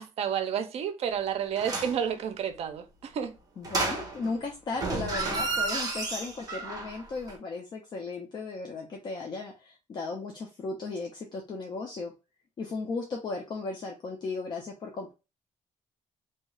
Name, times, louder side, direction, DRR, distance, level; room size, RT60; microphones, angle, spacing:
voice 1, 0.0-3.3, right 8 dB, 60° right, 0.5 m, -31 dB
sound 1, 1.6-2.0 3.6-4.4 4.7-7.0 7.3-7.4, right 3 dB, 30° right, 0.8 m, -31 dB
voice 2, 3.6-12.1 12.6-15.1, left 3 dB, 40° left, 0.5 m, -36 dB
2.7 x 2.4 x 3.0 m
cardioid pair, 155°, 12 cm